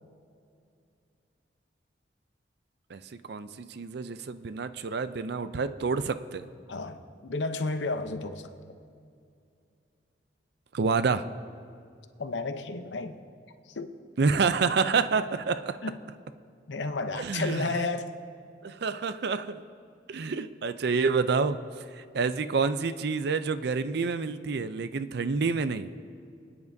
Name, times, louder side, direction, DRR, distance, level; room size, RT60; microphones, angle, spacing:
voice 1, 3.3-6.5 10.7-11.2 14.2-15.8 17.2-17.8 18.6-19.6 20.1-25.9, right 4 dB, 65° right, 12 dB, 0.5 m, -28 dB
voice 2, 6.7-8.5 12.2-13.2 13.7-13.9 15.8-15.9 16.7-18.1, left 3 dB, 90° left, 8 dB, 0.8 m, -32 dB
26.5 x 9.5 x 2.7 m, 2.4 s
head